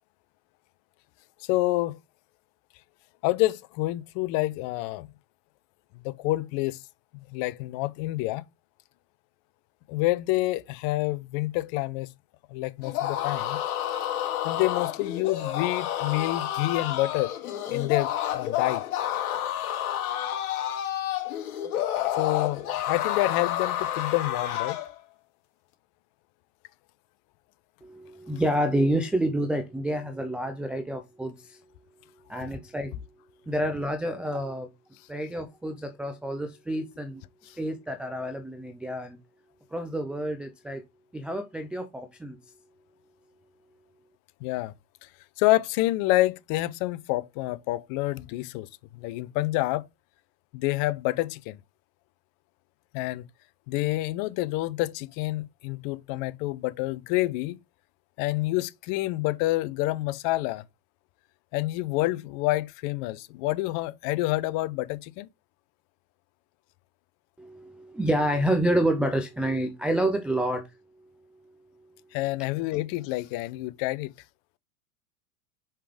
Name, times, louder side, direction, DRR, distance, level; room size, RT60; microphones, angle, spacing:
voice 1, 1.5-2.0 3.2-5.1 5.9-6.8 7.1-8.4 9.9-12.1 12.5-13.6 14.4-17.3 17.7-18.8 22.2-24.8 44.4-44.7 45.4-48.7 48.9-49.8 50.5-51.6 52.9-53.3 53.7-57.6 58.2-60.6 61.5-65.3 72.1-74.1, left 18 dB, 45° left, 0.7 m, -28 dB
sound 1, 12.8-24.9, left 11 dB, 70° left, 2.0 m, -30 dB
voice 2, 27.8-31.6 32.3-33.0 33.5-34.7 35.1-37.2 37.6-39.2 39.7-40.8 41.1-42.4 67.4-70.7, right 1 dB, 5° right, 0.3 m, -28 dB
5.7 x 4.9 x 3.5 m
hypercardioid pair, 120°, 45 cm